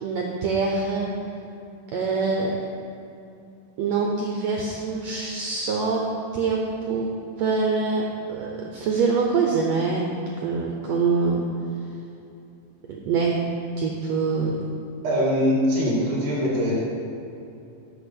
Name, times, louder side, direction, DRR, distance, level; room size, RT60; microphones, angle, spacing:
voice 1, 0.0-1.1 1.9-2.5 3.8-6.0 6.3-7.1 7.4-8.0 8.3-10.0 10.4-11.4 13.1-13.3 13.8-14.6, right 4 dB, 90° right, 0 dB, 1.5 m, -24 dB
voice 2, 15.0-16.7, equal, 60° right, -6 dB, 3.9 m, -22 dB
8.3 x 6.3 x 6.2 m, 2.7 s
omnidirectional pair, 4.1 m